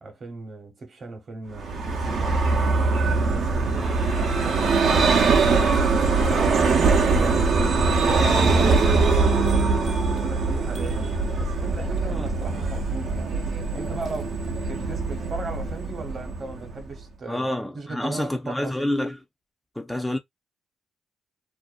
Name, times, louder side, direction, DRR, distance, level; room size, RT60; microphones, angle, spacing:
voice 1, 0.0-2.4 2.9-5.7 6.3-7.5 8.2-9.8 10.2-13.4 13.7-14.3 14.7-17.5 17.7-18.7, right 3 dB, 45° right, 1.0 m, -37 dB
Vehicle, 1.5-17.0, right 4 dB, 65° right, 0.6 m, -22 dB
voice 2, 8.7-9.0 12.1-12.3 17.3-19.2 19.8-20.2, left 1 dB, 5° left, 0.4 m, -28 dB
2.5 x 2.1 x 2.4 m
cardioid pair, 90°, 0 cm